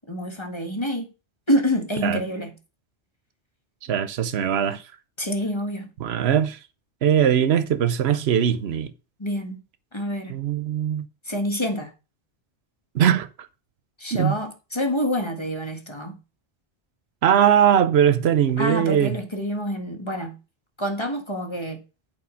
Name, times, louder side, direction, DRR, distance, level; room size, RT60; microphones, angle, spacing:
voice 1, 0.1-1.1 1.5-2.5 5.2-5.9 9.2-9.6 9.9-10.4 11.2-11.9 14.0-16.2 18.6-20.4 20.8-21.8, equal, 25° left, 1.8 m, -27 dB
voice 2, 3.8-4.8 6.0-6.6 7.0-8.9 10.3-11.0 12.9-13.5 14.1-14.3 17.2-19.1, right 9 dB, 80° right, 1.0 m, -20 dB
8.5 x 4.5 x 6.3 m
omnidirectional pair, 1.1 m